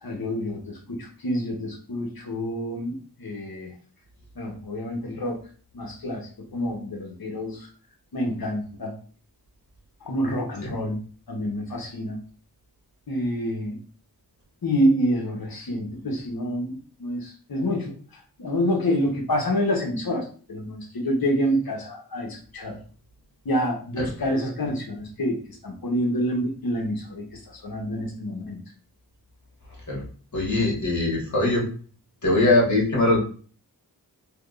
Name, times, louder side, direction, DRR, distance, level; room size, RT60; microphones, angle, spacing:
voice 1, 0.0-3.7 4.4-5.4 5.7-7.7 8.1-8.9 10.0-11.0 11.3-12.2 13.1-13.8 14.6-17.9 18.4-22.8 23.4-25.4 25.6-27.2 27.6-28.6, equal, 60° left, 1 dB, 1.0 m, -27 dB
voice 2, 30.3-31.7 32.2-33.2, left 2 dB, 45° left, -4 dB, 1.6 m, -21 dB
3.5 x 2.8 x 2.5 m, 0.42 s
wide cardioid pair, 40°, 40 cm